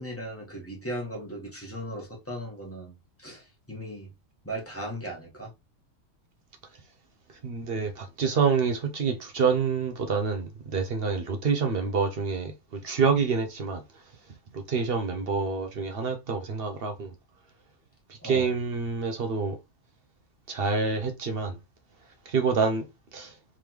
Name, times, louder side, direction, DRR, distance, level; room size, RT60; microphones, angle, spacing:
voice 1, 0.0-4.1 4.4-5.5 18.2-18.5, right 1 dB, 10° left, 1.3 m, -37 dB
voice 2, 7.4-13.8 14.5-17.1 18.2-19.6 20.5-21.6 22.3-22.9 23.1-23.3, right 5 dB, 55° right, 0.8 m, -27 dB
3.7 x 3.4 x 3.0 m
omnidirectional pair, 1.3 m